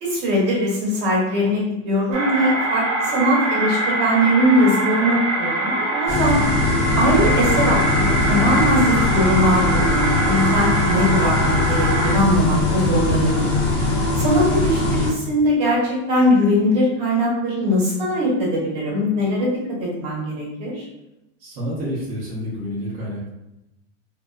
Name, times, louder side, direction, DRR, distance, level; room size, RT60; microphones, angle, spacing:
voice 1, 0.0-6.4 7.0-13.5 14.2-19.5 19.8-20.9, equal, 45° right, -3 dB, 0.9 m, -20 dB
sound 1, 2.1-12.2, right 1 dB, 75° right, 0.9 m, -23 dB
sound 2, 6.1-15.1, left 2 dB, 20° left, 0.5 m, -21 dB
voice 2, 21.4-23.3, equal, 25° right, -9 dB, 0.6 m, -29 dB
2.5 x 2.4 x 2.2 m, 0.92 s
supercardioid pair, 165°, 36 cm